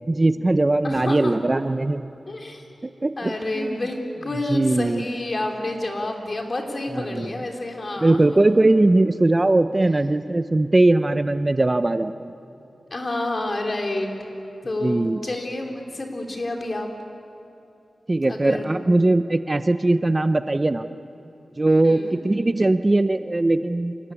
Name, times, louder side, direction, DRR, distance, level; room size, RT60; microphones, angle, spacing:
voice 1, 0.1-2.1 3.0-3.8 4.5-5.1 6.9-7.3 8.0-12.3 14.8-15.2 18.1-20.9 21.6-24.0, right 2 dB, 30° right, 11 dB, 0.6 m, -20 dB
voice 2, 0.8-1.4 2.3-2.7 3.2-8.6 12.9-14.1 14.6-16.9 18.3-18.7 21.8-22.2, left 2 dB, 40° left, 2 dB, 3.5 m, -29 dB
27.0 x 19.0 x 8.5 m, 2.8 s
wide cardioid pair, 85°, 0 cm